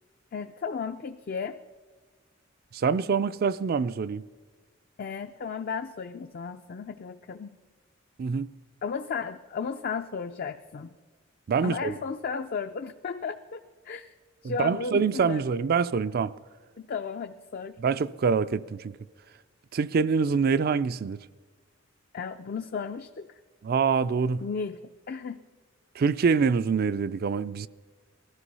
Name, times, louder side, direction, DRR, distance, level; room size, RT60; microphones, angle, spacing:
voice 1, 0.3-1.6 5.0-7.6 8.8-10.9 11.6-14.1 14.4-15.5 16.8-17.8 22.1-23.4 24.4-24.8 25.1-25.4, left 5 dB, 50° left, 0.4 m, -34 dB
voice 2, 2.7-4.2 8.2-8.5 11.5-12.0 14.4-16.3 17.8-19.0 19.7-21.2 23.6-24.4 26.0-27.7, right 5 dB, 50° right, 0.4 m, -25 dB
19.5 x 13.0 x 5.5 m
head